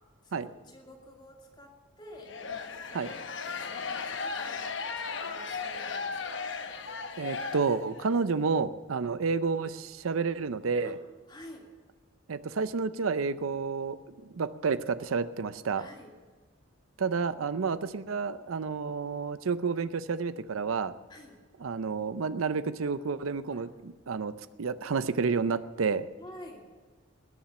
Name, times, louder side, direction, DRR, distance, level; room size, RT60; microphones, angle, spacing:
voice 1, 0.2-2.4 2.7-6.5 10.8-10.9 11.3-11.7 15.7-16.1 21.1-21.4 23.5-23.6 26.2-26.6, left 1 dB, 20° left, 0 dB, 2.6 m, -50 dB
sound 1, 2.2-8.2, left 5 dB, 60° left, 1.0 m, -36 dB
voice 2, 7.2-11.0 12.3-15.9 17.0-20.9 21.6-24.3 24.6-26.1, right 5 dB, 85° right, 14 dB, 0.6 m, -30 dB
20.0 x 7.3 x 7.0 m, 1.5 s
head